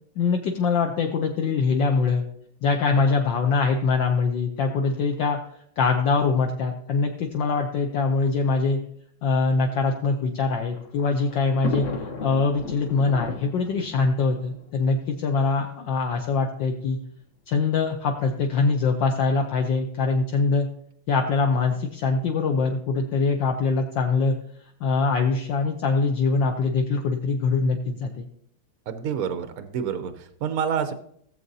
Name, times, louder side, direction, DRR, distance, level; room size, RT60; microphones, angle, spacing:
voice 1, 0.2-2.2 2.6-5.4 5.8-8.8 9.2-17.0 17.5-20.7 21.1-24.4 24.8-28.3, left 4 dB, 65° left, 3 dB, 1.4 m, -23 dB
Thunder, 10.2-15.5 16.3-16.4 16.7-16.8 17.8-18.1, left 3 dB, 50° left, 1.0 m, -36 dB
voice 2, 28.9-30.9, right 7 dB, 70° right, 9 dB, 0.8 m, -28 dB
17.0 x 7.6 x 2.7 m, 0.68 s
omnidirectional pair, 2.3 m